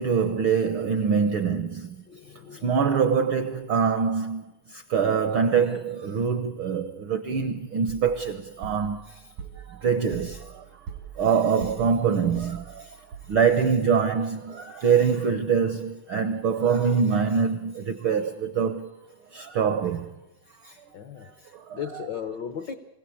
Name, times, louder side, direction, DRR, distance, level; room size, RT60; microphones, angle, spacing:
voice 1, 0.0-2.0 2.6-9.1 9.7-10.6 11.2-12.9 13.3-18.9 19.3-20.1 20.6-20.7 21.7-21.8, right 6 dB, 75° right, 1.2 m, -24 dB
voice 2, 2.1-2.8 20.9-21.3 21.7-22.7, left 8 dB, 80° left, 0.9 m, -36 dB
sound 1, 7.9-13.7, right 7 dB, 90° right, 4.2 m, -43 dB
26.0 x 16.5 x 8.5 m
omnidirectional pair, 3.5 m